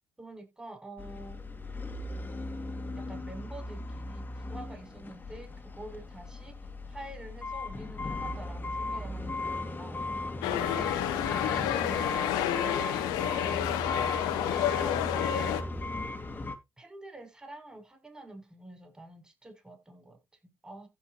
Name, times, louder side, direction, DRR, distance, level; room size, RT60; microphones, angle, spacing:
voice 1, 0.2-1.4 3.0-6.6 6.9-10.0 10.5-11.1 11.5-13.1 14.3-15.0 16.8-20.9, right 1 dB, 10° right, 7.6 m, -47 dB
sound 1, 1.0-16.6, left 2 dB, 25° left, 2.5 m, -37 dB
sound 2, 10.4-15.6, left 11 dB, 75° left, 1.7 m, -29 dB
15.0 x 5.5 x 3.2 m
hypercardioid pair, 55°, 7 cm